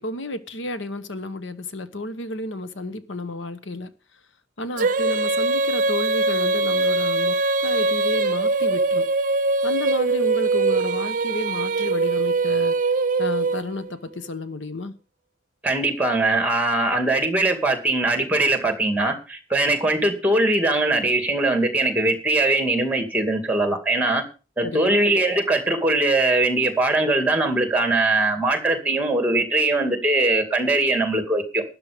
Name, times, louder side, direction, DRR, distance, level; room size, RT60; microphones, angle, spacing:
voice 1, 0.0-3.9 4.6-9.1 9.6-12.7 13.2-15.0 24.6-25.0, left 2 dB, 80° left, 1.1 m, -31 dB
Female singing, 4.8-13.9, right 3 dB, 45° right, 0.7 m, -22 dB
voice 2, 15.6-24.2 24.6-31.6, right 2 dB, 10° right, 2.2 m, -21 dB
13.0 x 9.6 x 5.1 m
head